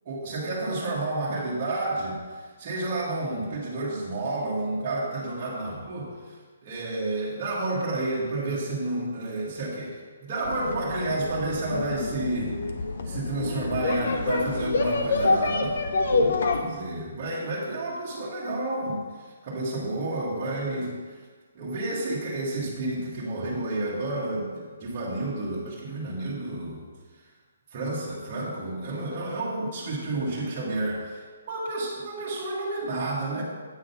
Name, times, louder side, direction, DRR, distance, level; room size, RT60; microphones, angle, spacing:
voice 1, 0.0-12.5 13.0-15.8 16.1-20.9 21.5-26.8 27.7-33.4, right 2 dB, 30° right, -7 dB, 1.5 m, -30 dB
sound 1, 10.4-16.6, left 3 dB, 60° left, 0.7 m, -27 dB
8.4 x 3.7 x 5.6 m, 1.5 s
hypercardioid pair, 170°, 0 cm